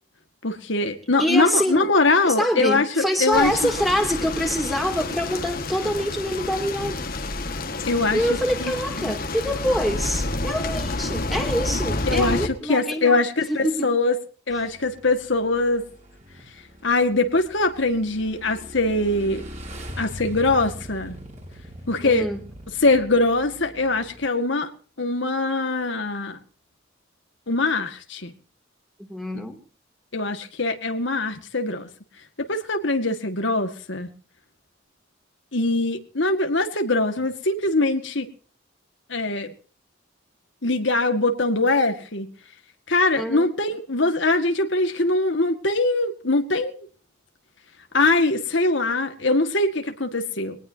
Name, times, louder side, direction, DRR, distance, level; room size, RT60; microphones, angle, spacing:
voice 1, 0.4-3.5 7.9-8.2 8.6-8.7 9.0-9.1 12.1-14.2 14.5-15.8 16.8-19.4 20.0-21.1 21.9-22.3 22.8-24.7 25.0-26.4 27.5-28.3 30.1-31.9 32.4-34.1 35.5-38.3 39.1-39.5 40.6-42.3 42.9-46.9 47.9-50.6, left 2 dB, 65° left, 6 dB, 2.0 m, -22 dB
voice 2, 1.2-1.9 2.3-7.1 8.1-13.2 13.5-14.0 22.0-22.4 29.1-29.6 43.2-43.5, equal, ahead, 2 dB, 2.9 m, -25 dB
sound 1, 3.3-12.5, left 2 dB, 45° left, 1.8 m, -29 dB
Motorcycle / Engine, 14.5-24.3, equal, 35° right, 5.4 m, -41 dB
23.0 x 19.0 x 2.9 m, 0.41 s
head